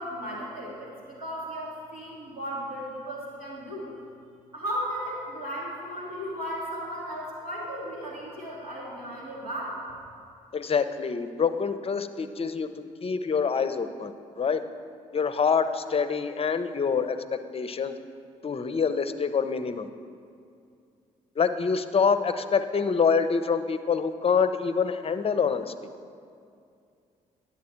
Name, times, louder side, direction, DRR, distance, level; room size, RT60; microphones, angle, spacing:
voice 1, 0.0-3.9 4.5-9.8, equal, 90° right, -8 dB, 1.8 m, -35 dB
voice 2, 10.5-12.7 13.0-14.1 14.4-14.6 15.1-18.0 18.4-19.9 21.4-25.7, left 6 dB, 30° left, 11 dB, 0.6 m, -26 dB
10.5 x 7.3 x 4.3 m, 2.4 s
figure-of-eight pair, 40°, 19 cm